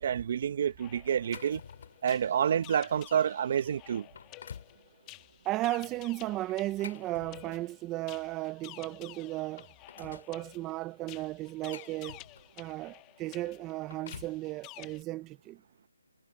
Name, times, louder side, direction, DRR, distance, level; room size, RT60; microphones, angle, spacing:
voice 1, 0.0-1.6 2.0-4.1, right 8 dB, 40° right, 1.2 m, -28 dB
sound 1, 0.6-15.0, left 22 dB, 15° left, 1.1 m, -52 dB
sound 2, 1.1-2.1 2.7-2.8 3.5-3.6 4.0-4.8 6.5-7.8 8.9-9.0 9.3-10.3 11.2-12.6 13.6-14.4, left 7 dB, 50° left, 2.6 m, -49 dB
voice 2, 5.4-9.7 10.0-12.2 12.6-15.6, right 17 dB, 15° right, 0.6 m, -35 dB
hypercardioid pair, 160°, 0 cm